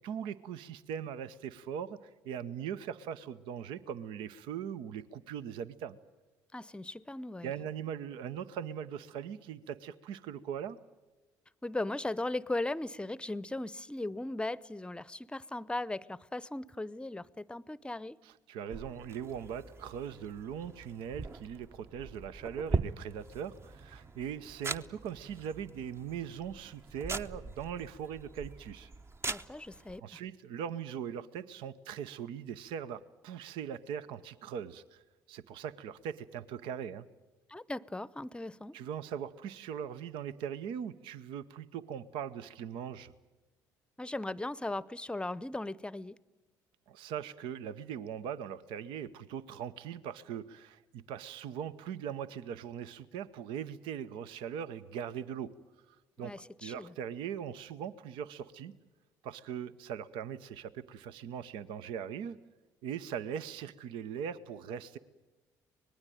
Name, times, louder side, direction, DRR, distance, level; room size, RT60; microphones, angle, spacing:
voice 1, 0.0-6.0 7.4-10.8 18.2-28.9 30.0-35.0 35.3-37.0 38.7-43.1 46.9-55.5 56.2-56.3 56.6-58.7 59.2-62.4 62.8-65.0, right 8 dB, 75° right, 0.8 m, -40 dB
voice 2, 6.5-7.5 11.6-18.2 29.3-30.2 37.5-38.8 44.0-46.2 56.2-56.9, left 2 dB, 10° left, 0.7 m, -38 dB
sound 1, 18.7-30.0, right 3 dB, 30° right, 0.9 m, -41 dB
25.0 x 20.0 x 9.2 m
hypercardioid pair, 65°, 9 cm